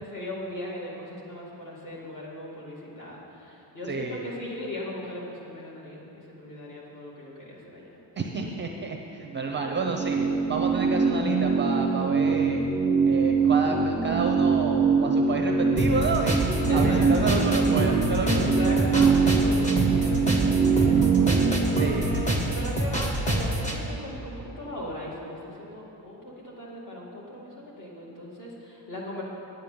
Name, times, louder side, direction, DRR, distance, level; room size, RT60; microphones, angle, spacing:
voice 1, 0.0-8.0 16.7-17.3 18.2-20.6 21.8-29.2, left 1 dB, 45° left, -4 dB, 2.3 m, -38 dB
voice 2, 3.9-4.4 8.2-10.2 10.5-12.6 13.1-18.8 21.7-22.4, right 4 dB, 25° right, 2 dB, 0.6 m, -30 dB
sound 1, 9.4-21.9, right 5 dB, 5° right, 1.0 m, -23 dB
sound 2, 15.8-23.8, right 1 dB, 15° left, 1.0 m, -26 dB
9.3 x 9.2 x 7.0 m, 3.0 s
cardioid pair, 175°, 44 cm